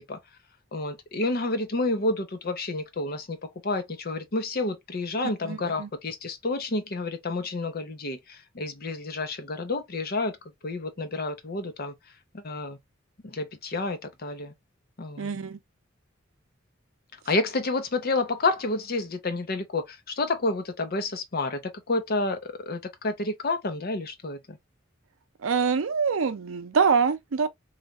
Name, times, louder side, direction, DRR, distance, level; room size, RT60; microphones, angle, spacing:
voice 1, 0.7-3.4 3.6-10.3 10.6-11.9 12.3-12.8 13.2-14.5 15.0-15.3 17.3-21.6 21.9-24.6, left 2 dB, 50° left, 0.7 m, -29 dB
voice 2, 5.4-5.9 15.2-15.6 25.4-27.5, right 5 dB, 85° right, 0.5 m, -25 dB
3.2 x 2.4 x 2.4 m
head